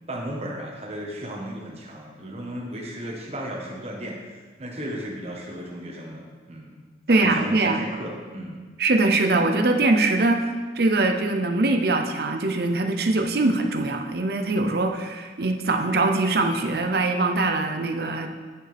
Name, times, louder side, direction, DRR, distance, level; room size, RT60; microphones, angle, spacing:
voice 1, 0.1-6.7 7.1-8.6, equal, 35° right, -2 dB, 1.3 m, -35 dB
voice 2, 7.1-7.8 8.8-10.4 10.7-18.3, right 2 dB, 60° right, 5 dB, 0.6 m, -22 dB
8.9 x 6.4 x 3.4 m, 1.4 s
head